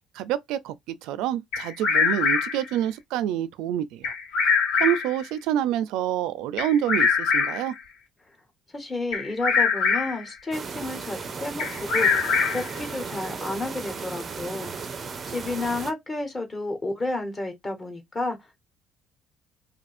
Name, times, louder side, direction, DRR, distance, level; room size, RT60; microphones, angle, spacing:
voice 1, 0.1-0.7 1.0-4.1 4.8-7.7, right 11 dB, 85° right, 0.4 m, -27 dB
Bird vocalization bird call bird song, 1.5-2.7 4.0-5.2 6.6-7.7 9.1-10.2 11.6-12.8, left 5 dB, 75° left, 1.6 m, -23 dB
voice 2, 8.7-14.7 15.2-18.6, left 2 dB, 20° left, 1.2 m, -31 dB
sound 1, 10.5-15.9, right 5 dB, 25° right, 0.5 m, -35 dB
2.7 x 2.5 x 4.2 m
cardioid pair, 155°, 0 cm